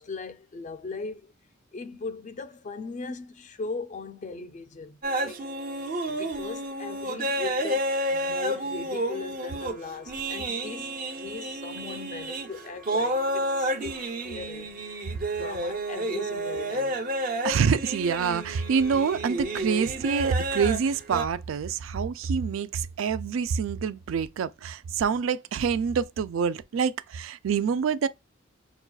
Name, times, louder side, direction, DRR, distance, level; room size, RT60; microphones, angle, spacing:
voice 1, 0.0-1.3 1.7-5.5 6.1-14.8 15.3-17.1, left 4 dB, 40° left, 0.4 m, -39 dB
sound 1, 5.0-21.2, right 1 dB, 45° right, 0.7 m, -31 dB
voice 2, 17.4-28.1, right 6 dB, 80° right, 0.3 m, -26 dB
5.9 x 2.3 x 2.3 m
head